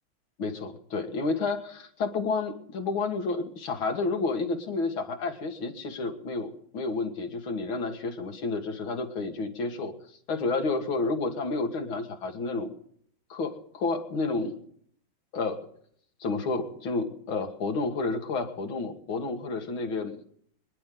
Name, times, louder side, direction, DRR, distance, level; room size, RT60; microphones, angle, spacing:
voice 1, 0.4-9.9 10.3-12.7 13.3-14.5 15.3-15.7 16.2-20.2, left 3 dB, 75° left, 5 dB, 2.5 m, -30 dB
25.5 x 10.5 x 3.8 m, 0.62 s
omnidirectional pair, 2.2 m